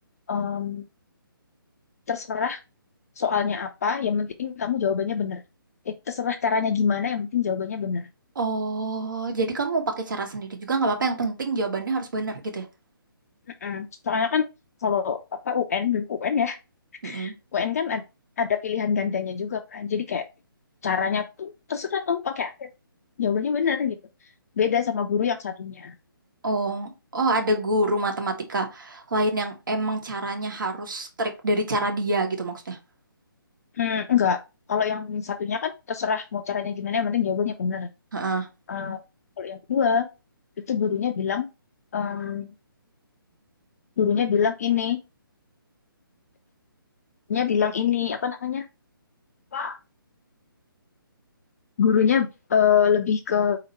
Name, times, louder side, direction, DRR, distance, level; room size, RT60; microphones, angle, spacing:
voice 1, 0.3-0.9 2.1-2.6 3.2-5.4 5.9-8.1 13.6-14.4 14.8-16.6 17.0-18.0 18.4-20.2 20.8-22.7 23.2-24.0 24.6-25.9 33.8-34.4 34.7-37.9 38.7-39.0 39.4-40.1 40.7-41.5 41.9-42.5 44.0-45.0 47.3-48.6 49.5-49.8 51.8-53.6, left 7 dB, 40° left, 0.5 m, -25 dB
voice 2, 8.3-12.6 17.0-17.3 26.4-32.8 38.1-38.5, right 2 dB, 60° right, 1.2 m, -26 dB
4.1 x 2.9 x 4.2 m
figure-of-eight pair, 145°, 12 cm